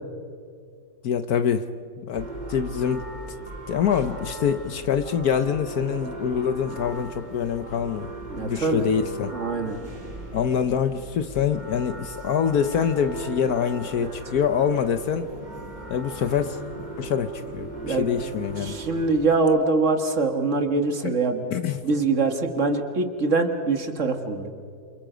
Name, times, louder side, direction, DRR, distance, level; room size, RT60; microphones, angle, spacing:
voice 1, 1.0-1.7 2.0-3.1 3.7-8.1 8.4-9.3 10.3-15.3 15.9-16.6 17.0-18.8 21.0-21.2 21.5-21.8, left 7 dB, 65° left, 10 dB, 1.2 m, -25 dB
sound 1, 2.1-19.4, right 2 dB, 25° right, 2.6 m, -38 dB
voice 2, 8.3-8.9 9.3-9.8 14.0-14.1 17.8-18.0 18.6-21.5 21.8-24.5, right 3 dB, 45° right, 6 dB, 1.9 m, -23 dB
28.5 x 27.5 x 5.1 m, 2.3 s
omnidirectional pair, 1.9 m